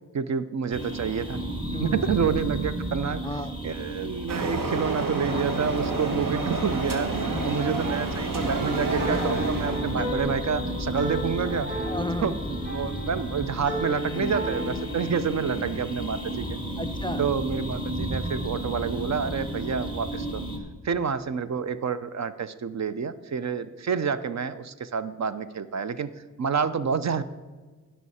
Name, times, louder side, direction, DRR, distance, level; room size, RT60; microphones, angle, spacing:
voice 1, 0.1-1.4 1.8-3.3 3.6-7.1 7.4-11.7 12.2-12.3 12.7-16.6 17.2-20.4 20.8-26.1 26.4-27.2, right 6 dB, 55° right, 13 dB, 0.6 m, -28 dB
sound 1, 0.7-20.6, right 1 dB, 15° right, 1.7 m, -33 dB
voice 2, 1.7-2.0 3.2-3.6 6.1-6.3 7.3-7.7 11.8-12.3 14.1-14.4 16.8-17.2, left 2 dB, 15° left, 12 dB, 0.3 m, -34 dB
sound 2, 4.3-10.0, right 3 dB, 85° right, 1.3 m, -30 dB
sound 3, 8.7-14.8, equal, 35° right, 3.2 m, -34 dB
15.5 x 5.7 x 4.2 m, 1.4 s
cardioid pair, 70°, 32 cm